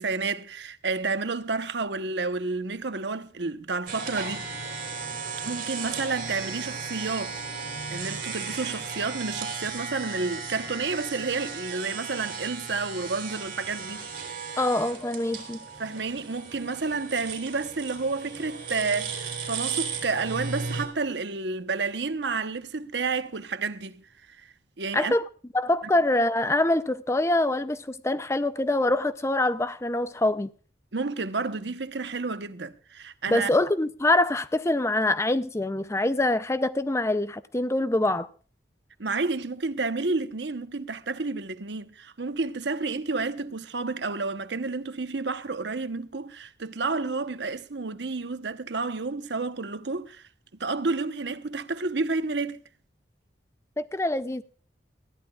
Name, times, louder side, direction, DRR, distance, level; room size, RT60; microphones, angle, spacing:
voice 1, 0.0-4.6 5.4-7.4 7.9-14.6 15.8-24.0 24.4-25.1 30.9-33.5 39.0-50.2 50.6-52.6, right 4 dB, 75° right, 1.0 m, -30 dB
sound 1, 3.9-20.9, right 5 dB, 50° right, 3.6 m, -35 dB
voice 2, 14.6-15.6 24.9-25.2 25.5-30.5 33.3-38.3 53.8-54.4, left 2 dB, 15° left, 0.5 m, -24 dB
20.5 x 14.0 x 2.4 m
head